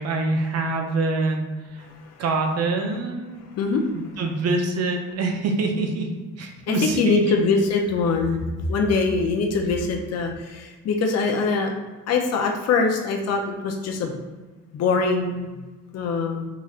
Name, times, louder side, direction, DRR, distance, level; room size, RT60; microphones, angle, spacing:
voice 1, 0.0-1.4 1.7-1.9 2.2-3.4 3.9-6.1 6.4-7.4, right 3 dB, 55° right, 3 dB, 0.7 m, -25 dB
voice 2, 3.6-3.9 6.7-11.7 12.1-14.1 14.7-15.5 15.9-16.5, left 4 dB, 55° left, 2 dB, 0.6 m, -23 dB
3.8 x 3.0 x 2.4 m, 1.2 s
cardioid pair, 90°, 30 cm